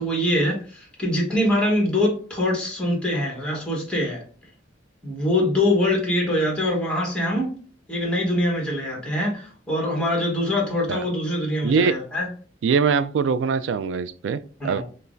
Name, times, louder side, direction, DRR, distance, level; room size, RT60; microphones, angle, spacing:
voice 1, 0.0-4.2 5.0-7.5 7.9-12.3 14.6-14.8, left 1 dB, 5° left, 1.2 m, -23 dB
voice 2, 11.6-12.0 12.6-14.8, right 5 dB, 80° right, 0.3 m, -22 dB
5.4 x 2.0 x 2.5 m
head